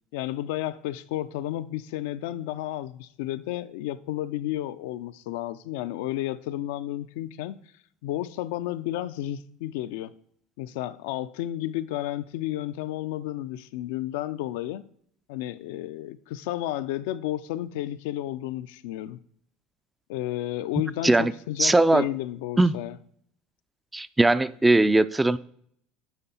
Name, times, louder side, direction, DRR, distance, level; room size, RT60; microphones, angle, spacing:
voice 1, 0.1-7.6 8.0-10.1 10.6-14.8 15.3-19.2 20.1-23.0, left 14 dB, 75° left, 0.3 m, -32 dB
voice 2, 21.6-22.1 22.6-22.7 23.9-25.4, right 2 dB, 10° right, 0.3 m, -20 dB
9.0 x 3.8 x 4.2 m
hypercardioid pair, 80°, 0 cm